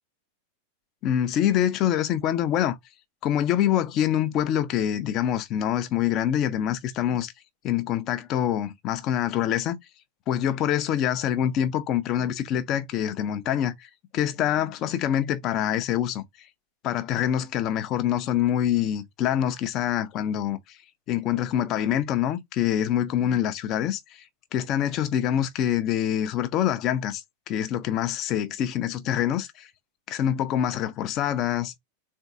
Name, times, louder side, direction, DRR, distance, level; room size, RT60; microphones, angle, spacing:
voice 1, 1.0-2.8 3.2-7.3 7.6-9.8 10.3-16.2 16.8-20.6 21.1-24.0 24.5-29.7 30.1-31.7, left 10 dB, 35° left, 0.6 m, -25 dB
3.8 x 2.6 x 3.7 m
figure-of-eight pair, 90°, 0 cm